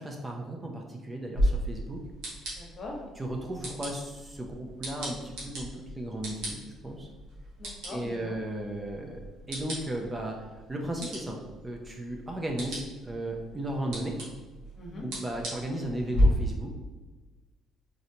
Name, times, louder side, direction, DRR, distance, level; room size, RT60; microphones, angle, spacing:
voice 1, 0.0-2.0 3.2-5.7 6.0-7.1 7.9-9.2 9.5-11.4 11.6-14.1 15.0-16.7, right 1 dB, 20° right, 1 dB, 0.7 m, -35 dB
sound 1, 1.3-16.2, equal, 75° right, 1.4 m, -37 dB
voice 2, 2.5-3.0 7.6-8.4 14.7-15.1, left 2 dB, 50° left, -1 dB, 1.1 m, -41 dB
3.9 x 3.1 x 2.8 m, 1.3 s
supercardioid pair, 75°, 0 cm